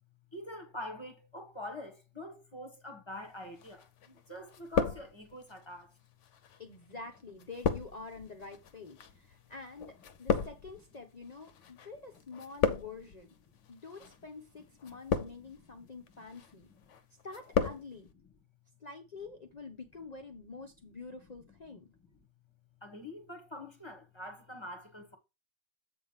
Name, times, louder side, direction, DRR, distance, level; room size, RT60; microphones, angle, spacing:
voice 1, 0.3-5.9 14.9-15.0 15.4-16.3 16.7-16.8 21.2-21.8 22.8-25.2, left 1 dB, 20° left, 1.2 m, -46 dB
sound 1, 3.6-4.2 4.5-5.5 6.2-11.9 12.1-13.2 13.9-14.2 14.8-15.6 16.1-16.5 16.9-17.8 18.1-18.2, left 6 dB, 65° left, 1.1 m, -34 dB
voice 2, 6.6-9.9 10.2-13.3 13.7-16.7 17.2-18.1 18.8-21.9, left 4 dB, 35° left, 0.8 m, -47 dB
7.9 x 3.4 x 5.6 m
omnidirectional pair, 1.4 m